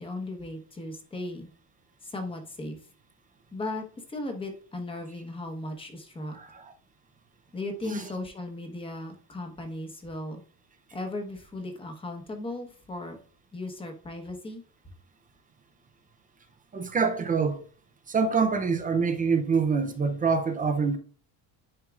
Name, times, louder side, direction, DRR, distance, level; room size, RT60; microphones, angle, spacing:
voice 1, 0.0-1.5 2.0-2.8 3.5-6.4 7.5-10.4 10.9-13.2 13.5-14.6, left 2 dB, 10° left, 1.1 m, -36 dB
voice 2, 6.3-6.7 7.9-8.1 16.7-17.6 18.1-21.0, right 5 dB, 15° right, 0.5 m, -26 dB
10.5 x 4.5 x 2.4 m
cardioid pair, 170°, 49 cm